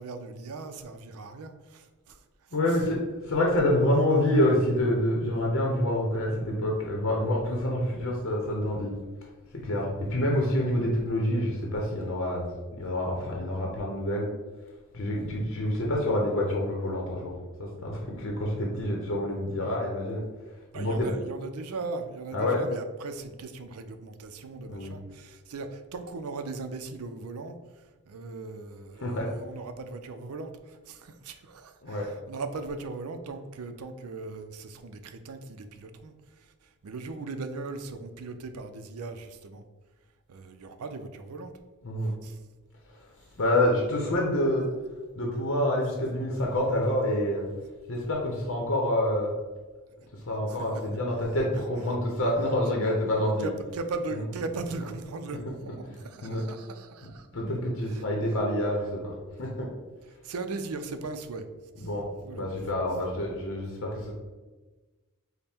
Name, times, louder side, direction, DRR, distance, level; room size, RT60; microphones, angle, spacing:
voice 1, 0.0-2.5 20.7-39.6 40.3-41.5 42.0-42.4 50.5-50.6 53.4-57.3 57.9-58.0 60.2-61.5 61.8-61.9 62.3-62.4, right 3 dB, 75° right, 8 dB, 0.5 m, -38 dB
voice 2, 2.5-8.9 9.5-12.5 12.8-14.3 14.9-17.3 17.6-20.2 20.7-21.1 22.3-22.6 24.7-24.9 29.0-29.3 31.8-32.1 41.8-42.1 42.9-43.1 43.4-44.7 45.2-47.4 47.9-49.3 50.1-53.5 54.1-54.5 55.3-55.9 56.2-56.5 57.3-59.7 61.7-64.1, left 1 dB, 60° left, -1 dB, 0.7 m, -27 dB
5.3 x 2.1 x 4.3 m, 1.2 s
head